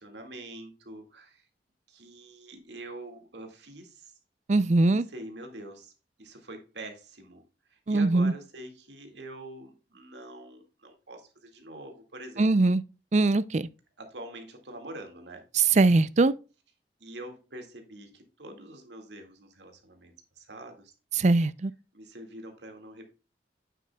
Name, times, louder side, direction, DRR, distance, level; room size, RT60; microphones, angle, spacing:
voice 1, 0.0-1.4 1.9-4.1 4.9-5.9 6.2-7.4 7.7-12.5 14.0-15.4 17.0-20.9 21.9-23.1, right 1 dB, 85° right, 2.1 m, -45 dB
voice 2, 4.5-5.0 7.9-8.3 12.4-12.8 13.1-13.7 15.5-16.3 21.2-21.7, right 3 dB, 40° right, 0.4 m, -21 dB
9.3 x 7.5 x 2.3 m
head